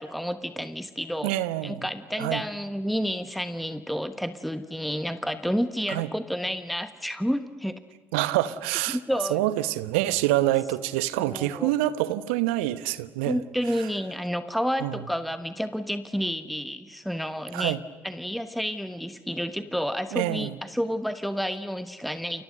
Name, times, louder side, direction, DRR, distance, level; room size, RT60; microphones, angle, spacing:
voice 1, 0.0-1.3 1.6-7.8 8.9-9.4 11.2-11.7 13.2-17.8 18.0-22.4, equal, ahead, 11 dB, 1.3 m, -30 dB
voice 2, 1.2-1.8 2.2-2.4 5.9-6.1 8.1-9.0 9.3-13.4 13.8-13.9 14.8-15.0 17.5-17.8 20.1-20.6, right 15 dB, 70° right, 15 dB, 1.1 m, -26 dB
29.5 x 29.5 x 6.7 m, 1.3 s
figure-of-eight pair, 50°, 7 cm